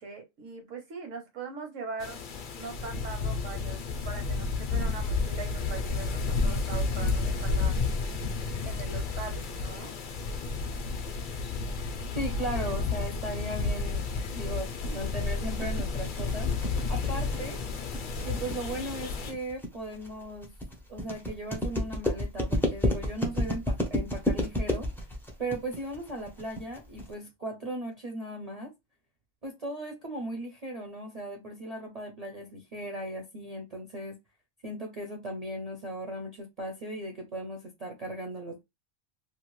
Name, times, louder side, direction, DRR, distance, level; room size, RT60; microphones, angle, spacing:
voice 1, 0.0-2.2 2.5-7.8 8.6-9.9, right 5 dB, 75° right, 1.3 m, -41 dB
sound 1, 2.0-19.3, left 4 dB, 55° left, 0.6 m, -31 dB
voice 2, 12.1-14.1 14.3-16.5 16.9-17.6 18.2-20.5 20.9-24.9 25.4-28.7 29.4-34.2 34.6-38.6, right 1 dB, 40° right, 0.6 m, -37 dB
sound 2, 15.2-27.1, left 1 dB, 5° left, 0.4 m, -31 dB
2.7 x 2.3 x 3.1 m
omnidirectional pair, 1.3 m